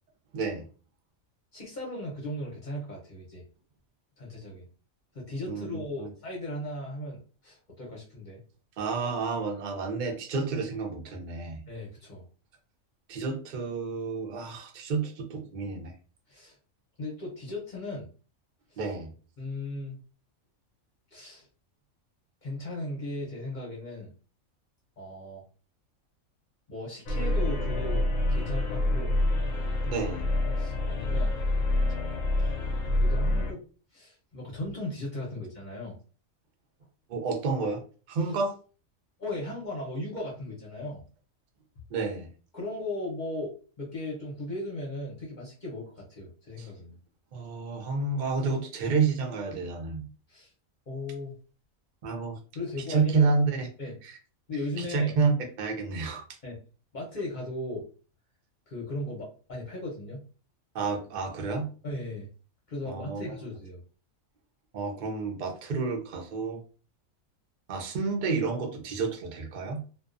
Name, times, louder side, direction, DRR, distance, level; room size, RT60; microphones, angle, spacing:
voice 1, 0.3-0.7 5.5-6.1 8.8-11.6 13.1-15.9 18.8-19.1 29.8-30.3 31.1-31.2 37.1-37.8 38.1-38.5 41.9-42.3 46.6-46.7 47.3-50.1 52.0-52.4 52.9-53.7 54.0-54.2 54.8-56.2 60.7-61.7 62.9-63.4 64.7-66.6 67.7-69.8, right 4 dB, 55° right, 3 dB, 0.5 m, -30 dB
voice 2, 1.5-3.4 4.2-4.7 5.1-8.4 11.7-12.2 16.3-16.6 17.0-18.1 18.7-18.8 19.4-20.0 21.1-21.4 22.4-24.1 25.0-25.4 26.7-28.0 28.3-29.1 30.6-31.3 33.0-33.6 33.9-36.0 39.2-41.0 42.5-43.5 43.8-47.0 50.3-50.5 50.9-51.3 52.5-53.3 53.8-54.0 54.5-55.1 56.4-56.6 56.9-57.9 58.7-60.2 61.8-62.3 62.7-63.8, left 1 dB, 45° left, -3 dB, 0.7 m, -37 dB
sound 1, 27.1-33.5, left 1 dB, 80° left, 1.0 m, -27 dB
2.3 x 2.3 x 2.4 m, 0.38 s
omnidirectional pair, 1.4 m